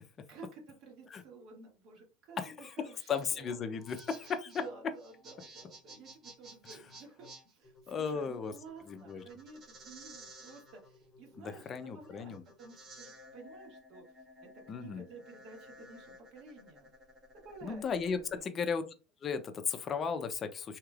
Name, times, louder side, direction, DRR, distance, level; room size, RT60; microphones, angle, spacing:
voice 1, 0.3-3.6 4.2-14.2 14.7-16.9 17.3-18.5, right 4 dB, 50° right, 1 dB, 1.5 m, -52 dB
voice 2, 2.4-2.7 3.1-4.5 7.9-8.5 8.9-9.2 11.4-12.4 14.7-15.0 17.6-18.8 19.2-20.8, left 6 dB, 30° left, 8 dB, 0.5 m, -35 dB
sound 1, 3.6-18.4, right 1 dB, 25° right, 1.2 m, -54 dB
3.1 x 2.8 x 2.4 m, 0.31 s
supercardioid pair, 125°, 0 cm